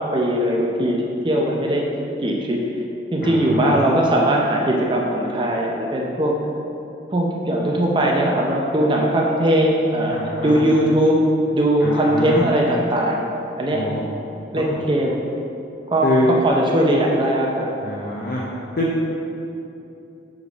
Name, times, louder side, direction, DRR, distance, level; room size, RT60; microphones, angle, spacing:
voice 1, 0.0-1.8 2.2-2.6 3.1-6.3 7.1-11.2 11.5-13.2 13.6-13.8 14.5-15.2 15.9-17.7, right 1 dB, 25° right, -1 dB, 0.5 m, -20 dB
voice 2, 3.2-3.8 10.1-10.6 11.8-12.4 13.7-14.0 16.0-16.3 17.8-18.4 18.8-19.0, left 1 dB, 50° left, -5 dB, 0.6 m, -24 dB
6.3 x 3.6 x 4.9 m, 2.8 s
head